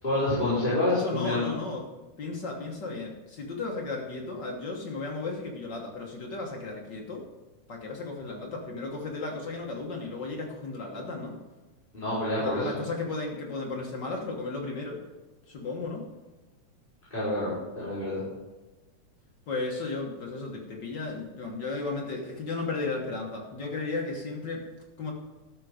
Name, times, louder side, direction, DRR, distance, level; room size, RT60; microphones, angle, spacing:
voice 1, 0.0-1.5 11.9-12.7 17.1-18.3, left 1 dB, 15° left, -12 dB, 4.4 m, -28 dB
voice 2, 1.0-1.9 2.2-7.2 7.7-11.4 12.4-15.0 15.5-16.1 19.5-24.6 25.0-25.1, left 3 dB, 55° left, -1 dB, 1.2 m, -34 dB
13.0 x 6.8 x 5.0 m, 1.1 s
omnidirectional pair, 3.8 m